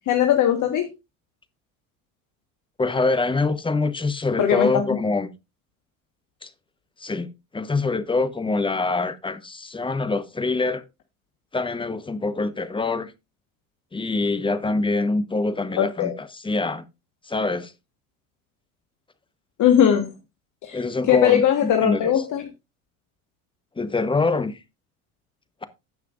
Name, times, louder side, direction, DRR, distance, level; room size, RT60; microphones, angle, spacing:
voice 1, 0.1-0.9 4.4-4.8 15.8-16.1 19.6-20.1 20.6-22.4, left 9 dB, 45° left, 1.4 m, -19 dB
voice 2, 2.8-5.3 6.4-6.5 7.0-7.3 7.5-10.8 11.5-13.1 13.9-16.8 17.2-17.7 20.7-22.1 23.8-24.6, left 3 dB, 10° left, 1.0 m, -25 dB
16.0 x 5.8 x 2.5 m
hypercardioid pair, 80°, 43 cm